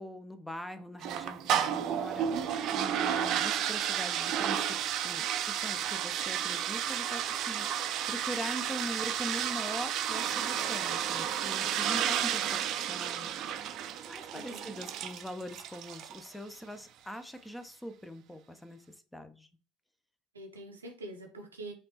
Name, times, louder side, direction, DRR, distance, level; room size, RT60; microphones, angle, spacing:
voice 1, 0.0-13.3 14.1-18.8 19.1-19.5, equal, 5° left, 10 dB, 0.6 m, -42 dB
sound 1, 1.0-16.3, right 9 dB, 50° right, 0.4 m, -32 dB
voice 2, 14.3-14.8 20.3-21.7, right 1 dB, 85° right, 2 dB, 0.7 m, -45 dB
5.1 x 2.5 x 2.8 m, 0.36 s
figure-of-eight pair, 65°, 0 cm